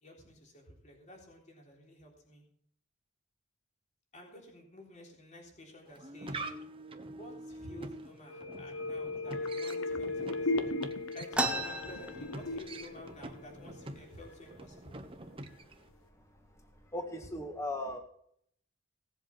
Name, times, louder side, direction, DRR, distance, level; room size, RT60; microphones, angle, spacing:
voice 1, 0.0-2.4 4.1-6.6 7.2-10.7 11.1-15.0, equal, 35° left, 0 dB, 3.7 m, -52 dB
sound 1, 5.9-15.9, right 2 dB, 25° right, 1.2 m, -46 dB
sound 2, 8.3-14.0 14.3-14.4, left 2 dB, 70° left, 1.2 m, -37 dB
sound 3, 11.3-12.9 13.3-13.4 13.6-14.3 14.9-15.0 15.7-15.9 16.4-16.8, right 1 dB, 5° right, 1.1 m, -35 dB
voice 2, 16.9-18.0, left 1 dB, 15° left, 4 dB, 1.7 m, -37 dB
17.5 x 8.0 x 5.9 m, 0.66 s
head